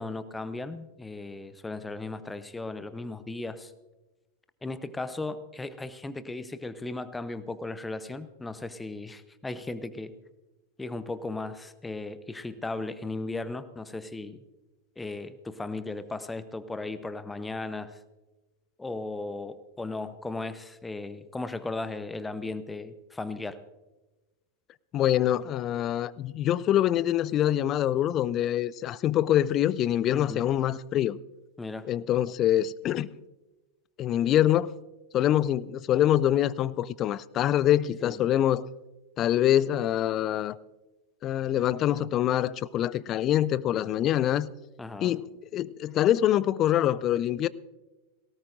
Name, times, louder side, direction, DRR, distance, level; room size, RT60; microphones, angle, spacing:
voice 1, 0.0-3.7 4.6-10.1 10.8-14.4 15.0-18.0 18.8-23.6 30.1-30.5 31.6-31.9 38.0-38.2 44.8-45.2, left 2 dB, 10° left, 0.7 m, -36 dB
voice 2, 24.9-31.2 31.9-33.1 34.0-34.7 35.1-38.7 39.2-40.6 41.2-44.5 45.0-45.3 45.5-47.5, left 12 dB, 35° left, 0.4 m, -25 dB
18.0 x 18.0 x 2.5 m
figure-of-eight pair, 90°, 0 cm